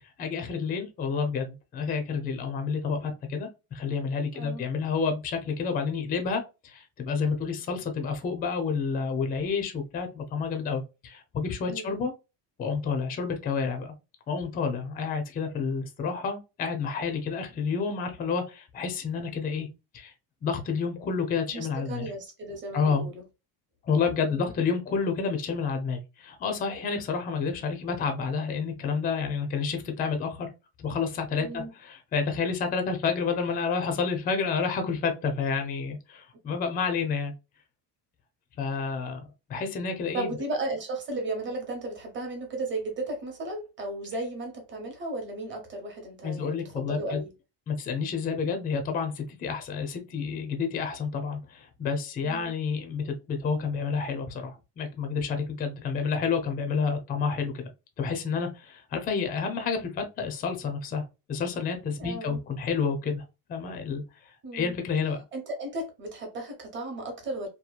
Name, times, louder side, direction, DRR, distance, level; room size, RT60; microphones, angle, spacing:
voice 1, 0.2-12.1 12.6-13.9 14.3-19.7 19.9-20.1 20.4-22.1 22.7-23.1 23.8-30.5 30.8-37.3 38.6-39.2 39.5-40.3 46.2-47.2 47.7-57.7 58.0-63.2 63.5-64.0 64.5-65.2, left 5 dB, 25° left, 0.4 m, -29 dB
voice 2, 4.3-4.7 11.7-12.1 21.5-23.2 24.2-24.5 31.4-31.7 40.1-47.3 52.2-52.5 62.0-62.4 64.4-64.7 65.3-67.5, right 2 dB, 30° right, 0.9 m, -35 dB
2.9 x 2.2 x 2.2 m
cardioid pair, 150°, 41 cm